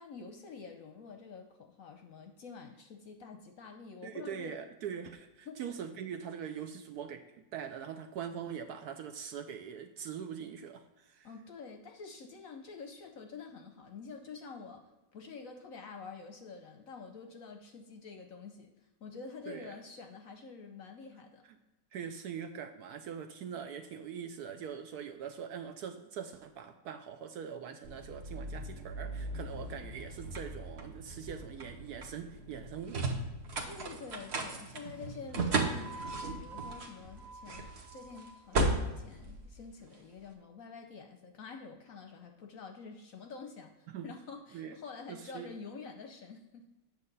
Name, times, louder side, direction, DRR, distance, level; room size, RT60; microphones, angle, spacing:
voice 1, 0.0-4.5 5.5-5.6 11.2-18.7 19.0-21.4 33.6-46.7, left 5 dB, 60° left, 5 dB, 0.9 m, -48 dB
voice 2, 4.0-11.3 19.5-19.8 21.5-21.6 21.9-33.2 33.5-33.7 43.9-44.1 44.5-44.8 45.1-45.5, right 8 dB, 70° right, 7 dB, 1.0 m, -42 dB
sound 1, 27.8-40.2, right 2 dB, 45° right, 1.0 m, -37 dB
8.6 x 6.6 x 4.0 m, 1.0 s
omnidirectional pair, 2.0 m